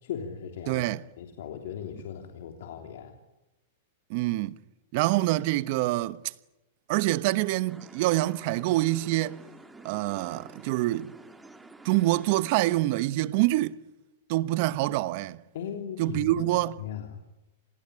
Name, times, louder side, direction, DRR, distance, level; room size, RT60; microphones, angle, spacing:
voice 1, 0.0-0.8 1.2-3.1 15.5-16.5 16.8-17.2, left 8 dB, 70° left, 3.2 m, -37 dB
voice 2, 0.7-1.0 4.1-4.6 4.9-6.2 6.9-9.4 9.8-11.1 11.8-13.8 14.3-15.4 16.0-16.7, right 17 dB, 50° right, 1.1 m, -26 dB
sound 1, 7.7-12.8, right 2 dB, 5° right, 1.9 m, -50 dB
27.0 x 20.0 x 10.0 m
hypercardioid pair, 135°, 0 cm